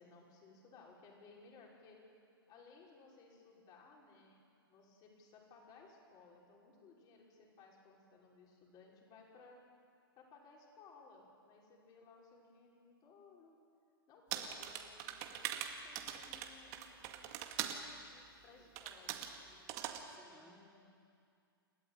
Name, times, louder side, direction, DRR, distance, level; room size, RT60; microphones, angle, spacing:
voice 1, 0.0-2.0 2.5-4.4 4.7-9.6 10.2-13.6 14.1-17.5 18.4-19.2 20.1-20.9, left 4 dB, 30° left, -1 dB, 5.6 m, -61 dB
sound 1, 14.3-17.8 18.8-19.3 19.7-20.0, right 11 dB, 40° right, 2.2 m, -42 dB
voice 2, 18.1-18.7 19.4-20.6, equal, ahead, -1 dB, 3.1 m, -66 dB
29.5 x 13.5 x 9.1 m, 2.4 s
hypercardioid pair, 115°, 13 cm